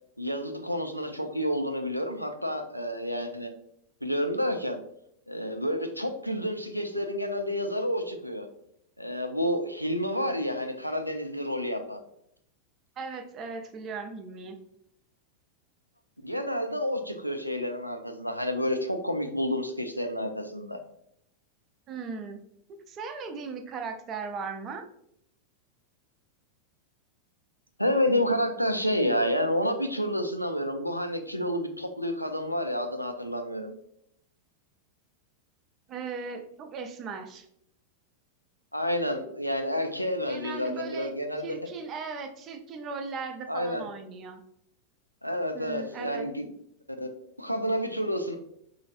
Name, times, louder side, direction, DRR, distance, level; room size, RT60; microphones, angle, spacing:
voice 1, 0.2-3.5 4.0-4.8 5.3-8.5 9.0-12.0 16.2-20.8 27.8-33.7 38.7-41.4 43.5-43.8 45.2-46.5 47.0-47.1 47.4-48.4, equal, 90° left, 5 dB, 0.3 m, -29 dB
voice 2, 13.0-14.6 21.9-22.4 22.9-24.9 35.9-37.5 40.3-41.1 41.4-44.4 45.5-46.3, right 5 dB, 30° right, 6 dB, 0.4 m, -37 dB
3.0 x 2.5 x 2.5 m, 0.74 s
figure-of-eight pair, 90°, 0 cm